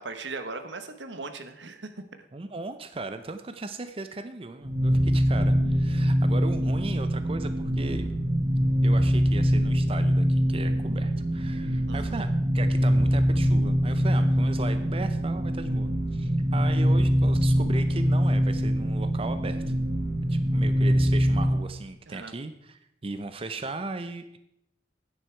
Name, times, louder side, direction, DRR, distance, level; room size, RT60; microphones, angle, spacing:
voice 1, 0.0-2.0 11.9-12.2 22.1-22.3, right 3 dB, 85° right, 9 dB, 1.1 m, -38 dB
voice 2, 2.3-8.1 8.8-12.3 12.5-19.7 20.3-24.4, right 3 dB, 30° right, 9 dB, 0.6 m, -37 dB
sound 1, 4.6-21.6, equal, 65° right, 1.4 m, -24 dB
9.9 x 9.4 x 4.5 m, 0.78 s
head